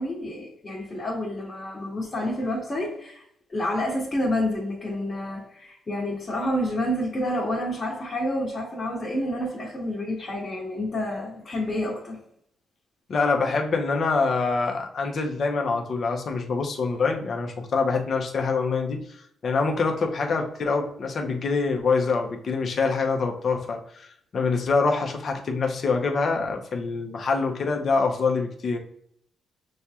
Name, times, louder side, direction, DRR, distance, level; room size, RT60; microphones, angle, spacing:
voice 1, 0.0-3.2 3.5-12.2, left 1 dB, 35° left, 1.4 m, -29 dB
voice 2, 13.1-19.0 19.4-28.8, left 4 dB, 55° left, 0.8 m, -25 dB
6.3 x 2.3 x 2.8 m
cardioid pair, 85°, 0 cm